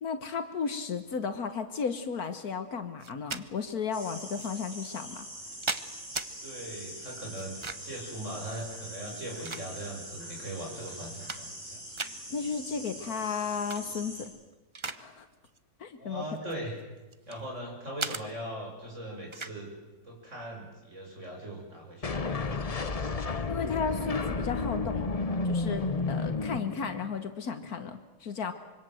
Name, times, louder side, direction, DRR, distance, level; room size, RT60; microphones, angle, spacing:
voice 1, 0.0-5.3 12.3-14.3 14.8-15.3 15.8-16.2 23.5-25.1 25.4-28.5, left 5 dB, 70° left, 8 dB, 1.7 m, -34 dB
sound 1, 3.0-3.4 4.4-4.5 5.2-6.3 7.4-8.0 9.0-10.0 10.6-10.7 11.0-11.7 12.0-12.2 13.5-13.8 14.2-15.0 15.3-15.6 16.3-17.4 18.0-18.2 19.3-19.6, right 3 dB, 25° right, 0.7 m, -37 dB
sound 2, 3.9-14.2, equal, 85° right, 8.7 m, -43 dB
voice 2, 6.4-7.5 7.8-11.8 15.9-16.8 17.3-19.7 20.0-22.7, right 1 dB, 50° right, 0 dB, 7.0 m, -40 dB
sound 3, 22.0-27.2, left 3 dB, 30° left, 0.9 m, -31 dB
25.5 x 24.0 x 7.8 m, 1.2 s
omnidirectional pair, 1.6 m